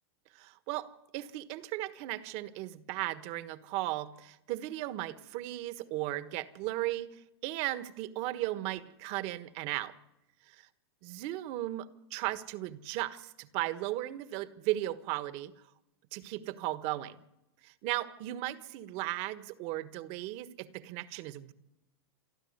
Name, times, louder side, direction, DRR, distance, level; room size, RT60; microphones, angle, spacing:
voice 1, 0.3-9.9 10.5-10.7 11.0-15.5 16.1-17.2 17.6-21.5, right 16 dB, 50° right, 12 dB, 1.4 m, -36 dB
28.0 x 10.5 x 9.6 m, 0.93 s
hypercardioid pair, 125°, 13 cm